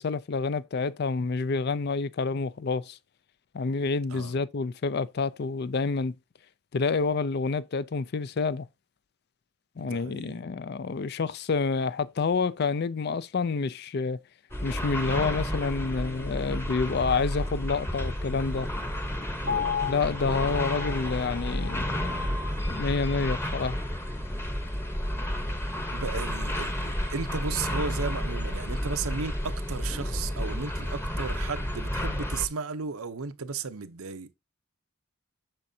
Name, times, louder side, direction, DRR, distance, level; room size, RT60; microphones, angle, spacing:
voice 1, 0.0-3.0 3.5-6.1 6.7-8.7 9.8-14.2 14.6-18.7 19.8-22.4 22.7-23.8, left 4 dB, 50° left, 0.4 m, -28 dB
voice 2, 9.8-10.4 19.4-19.9 25.9-34.3, right 5 dB, 90° right, 0.8 m, -35 dB
sound 1, 14.5-32.5, equal, 10° left, 0.9 m, -31 dB
Piano, 19.5-23.6 24.0-24.1, left 6 dB, 85° left, 3.8 m, -35 dB
8.8 x 6.3 x 2.7 m
head